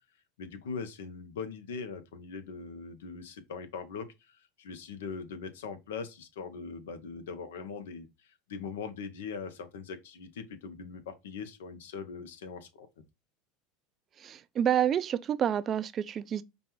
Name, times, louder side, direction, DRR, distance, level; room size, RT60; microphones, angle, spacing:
voice 1, 0.4-12.9, left 5 dB, 85° left, 0.7 m, -41 dB
voice 2, 14.2-16.4, right 9 dB, 35° right, 0.3 m, -28 dB
5.1 x 2.3 x 3.0 m
hypercardioid pair, 100°, 0 cm